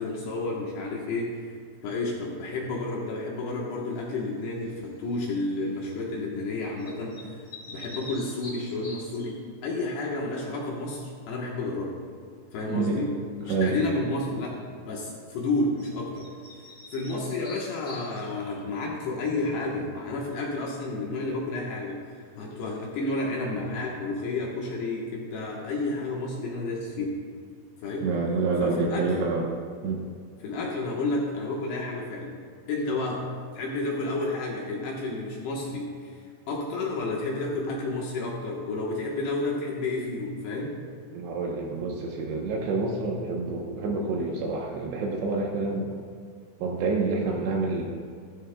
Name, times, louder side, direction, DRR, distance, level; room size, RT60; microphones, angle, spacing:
voice 1, 0.0-1.4 1.8-7.4 7.7-12.0 12.5-13.1 13.4-16.3 16.9-22.0 22.4-27.2 27.8-28.1 28.6-29.1 30.4-32.3 32.7-33.2 33.5-40.8, left 2 dB, 70° left, -3 dB, 2.8 m, -31 dB
sound 1, 4.6-5.0 6.8-9.4 15.8-15.9 16.1-18.6, left 2 dB, 30° left, 3.3 m, -45 dB
voice 2, 12.7-13.0 13.5-13.8 28.0-29.5 29.8-30.0 41.1-45.9 46.6-47.8, right 3 dB, 75° right, -1 dB, 2.8 m, -27 dB
15.0 x 13.0 x 2.2 m, 2.1 s
omnidirectional pair, 5.8 m